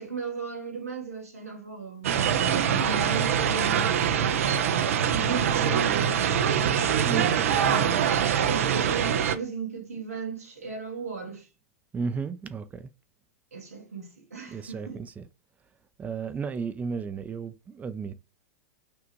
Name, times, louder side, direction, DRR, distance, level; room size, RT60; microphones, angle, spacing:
voice 1, 0.0-3.9 5.1-6.8 7.5-8.1 8.4-11.5 13.5-15.0, right 4 dB, 85° right, 1.6 m, -36 dB
sound 1, 2.0-9.4, right 8 dB, 65° right, 0.6 m, -24 dB
voice 2, 7.0-7.6 11.9-12.9 14.5-15.3 16.0-18.1, right 5 dB, 20° right, 0.6 m, -34 dB
6.1 x 2.5 x 3.1 m
hypercardioid pair, 100°, 8 cm